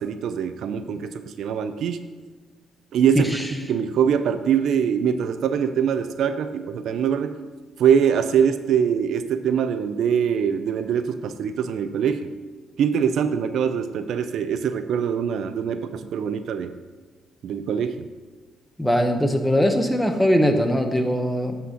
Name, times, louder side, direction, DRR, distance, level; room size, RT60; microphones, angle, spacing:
voice 1, 0.0-2.0 2.9-3.3 3.7-7.3 7.8-12.3 12.8-16.7 17.4-18.1, right 7 dB, 70° right, 9 dB, 0.5 m, -23 dB
voice 2, 18.8-21.6, equal, 5° left, 5 dB, 1.0 m, -21 dB
8.1 x 4.2 x 6.3 m, 1.4 s
cardioid pair, 90°, 0 cm